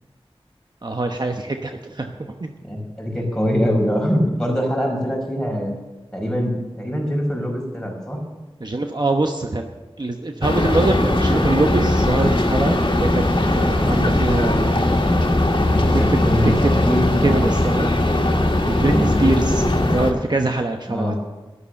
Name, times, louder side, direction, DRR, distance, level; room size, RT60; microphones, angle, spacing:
voice 1, 0.8-2.5 8.6-9.7 10.0-13.2 13.5-14.9 16.1-16.7 17.2-17.9 18.7-21.2, right 2 dB, 45° right, 4 dB, 1.0 m, -23 dB
voice 2, 2.7-5.8 6.1-8.2 15.6-17.4 18.9-19.1 20.9-21.2, equal, 5° left, -1 dB, 5.1 m, -23 dB
sound 1, 10.4-20.1, left 1 dB, 55° left, 2.0 m, -19 dB
13.0 x 11.5 x 6.5 m, 1.1 s
wide cardioid pair, 60°, 10 cm